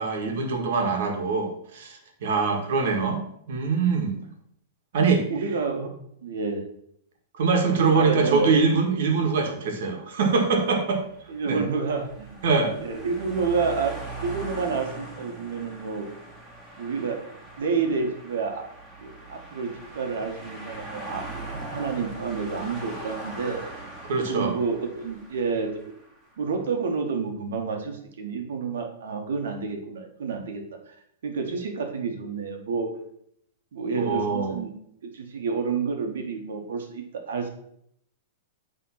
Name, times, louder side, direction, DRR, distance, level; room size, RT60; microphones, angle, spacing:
voice 1, 0.0-3.2 3.5-4.2 4.9-5.2 7.4-11.0 11.5-11.6 12.4-12.7 24.0-24.5 33.9-34.6, right 4 dB, 60° right, 4 dB, 1.7 m, -23 dB
voice 2, 5.3-5.9 6.2-6.6 7.7-8.6 11.3-12.5 12.8-13.9 14.2-16.1 16.8-17.2 17.6-18.6 19.0-23.6 24.3-25.7 26.4-31.0 31.2-32.9 33.7-34.7 35.0-37.5, right 5 dB, 85° right, 4 dB, 1.8 m, -29 dB
sound 1, 10.9-26.3, right 2 dB, 10° right, 1.9 m, -41 dB
8.2 x 3.7 x 5.8 m, 0.70 s
supercardioid pair, 175°, 0 cm